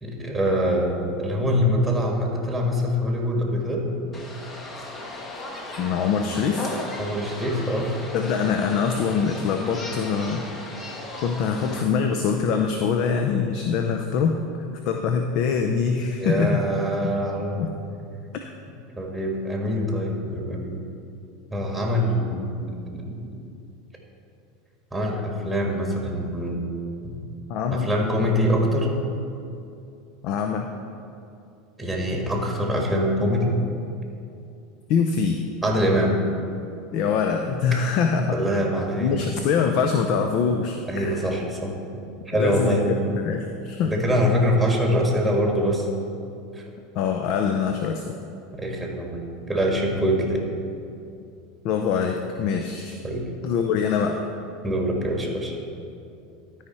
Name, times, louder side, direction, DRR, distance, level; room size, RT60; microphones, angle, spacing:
voice 1, 0.0-3.9 7.0-7.9 16.2-17.6 19.0-20.8 21.5-23.3 24.9-26.6 27.7-28.9 31.8-33.6 35.6-36.2 38.3-39.3 40.9-41.8 42.3-42.9 43.8-45.9 48.5-50.4 53.0-53.3 54.6-55.5, equal, 5° right, 0 dB, 1.6 m, -24 dB
sound 1, 4.1-11.8, left 2 dB, 30° left, 1.3 m, -36 dB
voice 2, 5.8-6.7 8.1-10.4 11.2-14.4 14.9-16.6 17.0-17.2 17.6-17.7 27.5-27.9 30.2-30.7 34.9-35.4 36.9-38.4 39.0-41.3 42.3-43.9 46.9-48.1 51.6-53.0 53.4-54.2, left 6 dB, 60° left, 4 dB, 0.6 m, -24 dB
12.5 x 4.9 x 4.3 m, 2.6 s
hypercardioid pair, 105°, 0 cm